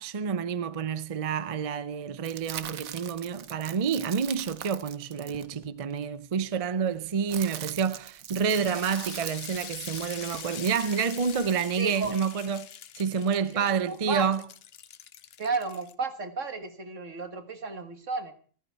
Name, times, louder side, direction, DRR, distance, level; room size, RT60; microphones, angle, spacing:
voice 1, 0.0-12.7 13.0-14.4, right 6 dB, 40° right, 0.5 m, -28 dB
sound 1, 2.2-6.0 6.9-12.1, right 10 dB, 80° right, 1.3 m, -42 dB
sound 2, 8.4-15.9, left 9 dB, 55° left, 0.9 m, -44 dB
voice 2, 11.8-12.1 13.5-14.3 15.4-18.3, right 4 dB, 65° right, 2.1 m, -33 dB
14.0 x 14.0 x 4.6 m
omnidirectional pair, 1.4 m